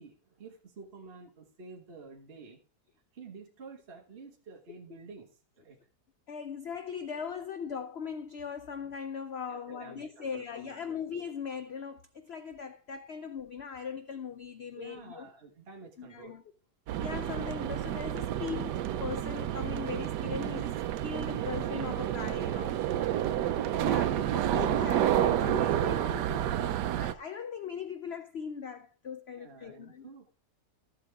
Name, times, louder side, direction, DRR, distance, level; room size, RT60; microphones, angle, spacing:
voice 1, 0.0-2.6 3.1-5.8 9.5-11.0 14.7-16.3 23.0-23.3 29.3-30.3, right 4 dB, 35° right, 1.6 m, -50 dB
voice 2, 6.3-15.3 16.0-16.4 17.0-22.8 23.7-30.1, left 6 dB, 80° left, 0.5 m, -39 dB
sound 1, 16.9-27.1, right 11 dB, 80° right, 1.2 m, -30 dB
13.0 x 7.7 x 3.5 m
omnidirectional pair, 1.8 m